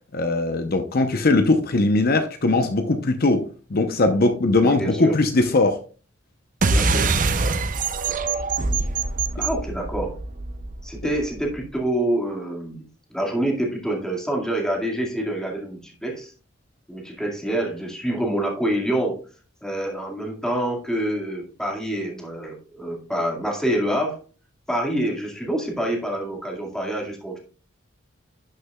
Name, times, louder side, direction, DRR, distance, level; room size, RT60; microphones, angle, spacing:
voice 1, 0.1-3.4 3.7-5.8, left 2 dB, 50° left, 7 dB, 0.8 m, -20 dB
voice 2, 4.6-5.1 6.7-7.3 9.3-10.2 10.8-16.3 16.9-19.2 19.6-24.2 24.7-27.4, right 1 dB, 5° left, -1 dB, 2.1 m, -26 dB
sound 1, 6.6-11.5, right 3 dB, 45° right, 0.6 m, -24 dB
11.5 x 6.5 x 2.3 m, 0.39 s
head